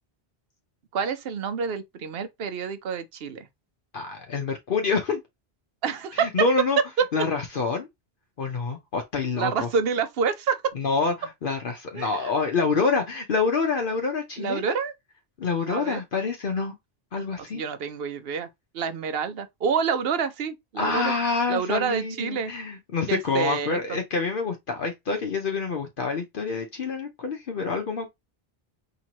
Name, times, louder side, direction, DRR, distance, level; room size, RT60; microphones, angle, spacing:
voice 1, 0.9-3.5 5.8-6.3 7.0-7.1 9.4-10.6 11.9-12.3 14.4-14.9 15.7-16.0 17.4-18.5 18.7-21.1 21.5-22.5 23.1-24.0, right 6 dB, 70° right, 0.9 m, -28 dB
voice 2, 3.9-5.2 6.1-6.8 7.1-7.9 8.4-9.7 10.7-14.7 15.4-16.7 17.1-17.6 20.8-28.1, left 4 dB, 60° left, 0.8 m, -27 dB
4.4 x 2.9 x 2.8 m
omnidirectional pair, 1.1 m